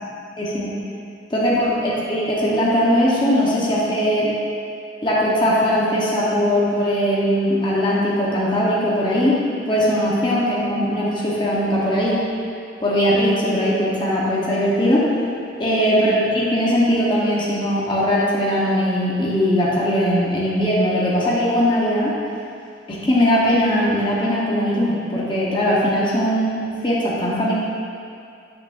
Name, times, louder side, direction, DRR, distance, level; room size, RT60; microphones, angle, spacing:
voice 1, 0.4-0.7 1.3-4.3 5.0-9.4 9.7-12.2 12.8-15.0 15.6-22.1 22.9-27.5, equal, 25° left, -7 dB, 1.0 m, -20 dB
8.7 x 6.0 x 2.6 m, 2.5 s
head